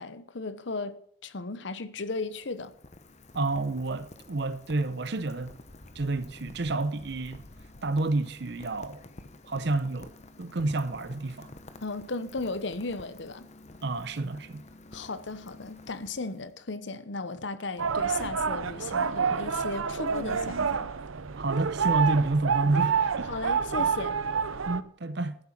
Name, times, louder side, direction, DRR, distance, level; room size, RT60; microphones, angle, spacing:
voice 1, 0.0-2.7 11.8-13.5 14.9-20.9 23.3-24.2, left 3 dB, 65° left, 0.9 m, -35 dB
Rain, 1.9-16.7, left 2 dB, 35° left, 1.0 m, -50 dB
voice 2, 3.3-5.5 5.9-7.4 7.8-9.0 9.5-10.1 10.4-11.5 13.8-14.6 21.4-23.3 24.7-25.4, right 2 dB, 55° right, 0.7 m, -29 dB
sound 1, 17.8-24.8, right 6 dB, 90° right, 0.7 m, -28 dB
14.0 x 8.0 x 5.9 m
head